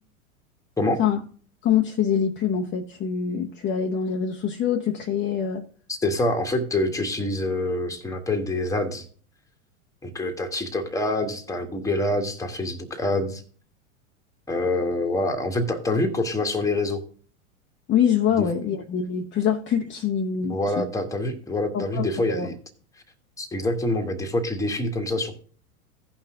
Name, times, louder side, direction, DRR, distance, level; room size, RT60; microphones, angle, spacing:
voice 1, 1.6-5.7 17.9-20.8 21.7-22.5, left 8 dB, 25° left, 3 dB, 0.9 m, -24 dB
voice 2, 5.9-9.1 10.0-13.4 14.5-17.0 18.3-18.4 20.5-22.6 23.4-25.4, left 2 dB, 10° left, 4 dB, 1.5 m, -26 dB
16.0 x 5.7 x 3.7 m, 0.44 s
hypercardioid pair, 100°, 43 cm